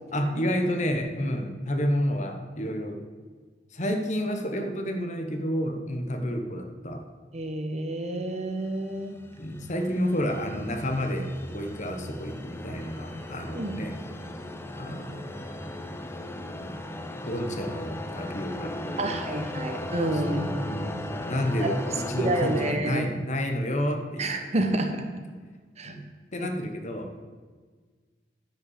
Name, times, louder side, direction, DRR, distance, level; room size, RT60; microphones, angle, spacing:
voice 1, 0.1-3.0 3.7-7.0 9.4-11.3 11.5-13.9 14.7-15.2 16.6-16.7 17.2-19.2 19.7-19.8 20.1-20.5 21.3-24.4 25.8-26.0 26.3-27.2, equal, 45° left, 5 dB, 1.1 m, -30 dB
voice 2, 7.3-9.2 13.5-13.7 19.0-21.0 21.6-21.7 22.2-23.0 24.2-24.9 25.8-25.9 26.4-26.5, right 1 dB, 40° right, 5 dB, 1.1 m, -29 dB
sound 1, 8.6-22.7, left 1 dB, 15° left, 0.7 m, -37 dB
10.5 x 5.5 x 7.3 m, 1.5 s
head